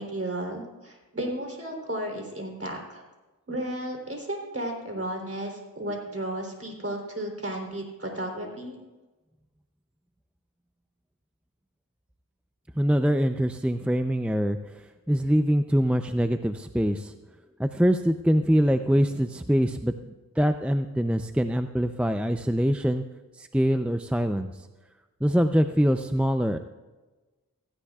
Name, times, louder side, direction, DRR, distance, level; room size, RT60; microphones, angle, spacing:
voice 1, 0.0-3.0 3.5-8.8, right 1 dB, 40° right, 1 dB, 3.5 m, -33 dB
voice 2, 12.8-14.8 15.1-17.1 17.6-23.0 23.4-24.5 25.2-26.6, equal, 5° right, 7 dB, 0.6 m, -24 dB
16.5 x 16.0 x 2.4 m, 1.2 s
wide cardioid pair, 45°, 35 cm